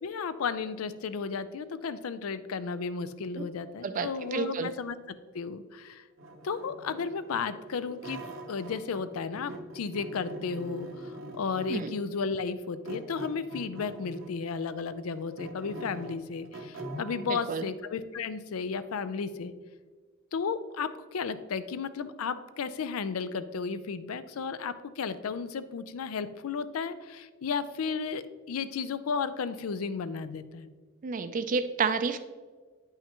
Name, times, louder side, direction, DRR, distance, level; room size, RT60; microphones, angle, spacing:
voice 1, 0.0-6.0 6.4-8.2 8.5-19.5 20.3-30.7, left 5 dB, 85° left, 13 dB, 0.4 m, -34 dB
voice 2, 3.8-4.7 11.7-11.9 17.3-17.7 31.0-32.2, right 5 dB, 40° right, 10 dB, 0.3 m, -30 dB
sound 1, 6.2-9.1 9.3-12.0 12.8-14.4 14.9-17.4, right 1 dB, 65° right, 0.8 m, -42 dB
9.1 x 5.6 x 2.9 m, 1.5 s
head